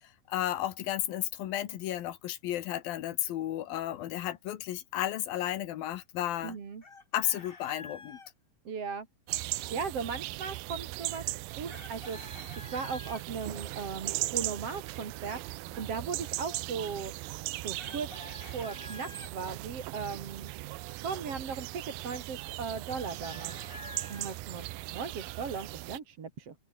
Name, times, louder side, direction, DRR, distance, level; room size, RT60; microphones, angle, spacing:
voice 1, 0.3-6.6 7.1-8.2, left 13 dB, 85° left, 3.2 m, -33 dB
voice 2, 6.4-6.8 8.7-9.1 9.7-11.2 11.6-17.1 17.6-18.1 18.5-20.5 21.0-23.5 24.1-26.6, right 5 dB, 45° right, 3.6 m, -38 dB
Chicken rooster, 6.8-8.3 11.7-13.2 17.8-19.3 22.9-24.4, left 4 dB, 50° left, 0.6 m, -48 dB
sound 1, 9.3-26.0, right 19 dB, 90° right, 2.5 m, -38 dB
open air
omnidirectional pair, 4.0 m